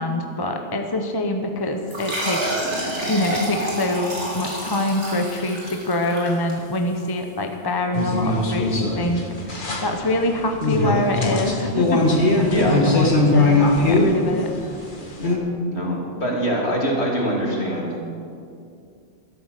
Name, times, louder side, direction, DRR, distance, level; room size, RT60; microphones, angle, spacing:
voice 1, 0.0-2.5 3.1-12.2 12.5-14.5, left 1 dB, 20° left, 4 dB, 0.9 m, -25 dB
sound 1, 1.9-7.0, right 1 dB, 70° right, 3.7 m, -29 dB
sound 2, 7.9-15.4, left 2 dB, 45° left, 1.8 m, -20 dB
voice 2, 15.7-17.9, equal, 60° left, -2 dB, 3.1 m, -24 dB
12.5 x 12.5 x 6.6 m, 2.5 s
omnidirectional pair, 1.2 m